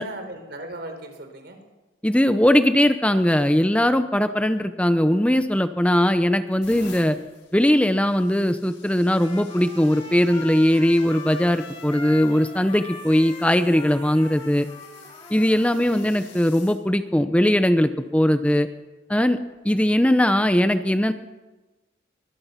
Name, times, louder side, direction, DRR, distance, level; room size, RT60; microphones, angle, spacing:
voice 1, 0.0-1.6 15.8-16.3, right 1 dB, 60° right, 6 dB, 4.4 m, -38 dB
voice 2, 2.0-7.2 7.5-14.7 15.3-18.7 19.1-19.4 19.6-21.1, left 1 dB, 5° left, 9 dB, 0.8 m, -20 dB
sound 1, 5.6-6.0 6.5-16.8 17.6-17.9 19.4-19.6, left 5 dB, 80° left, 6.2 m, -49 dB
Trumpet, 9.1-16.1, left 3 dB, 30° left, 4.5 m, -41 dB
22.5 x 21.5 x 5.8 m, 1.1 s
head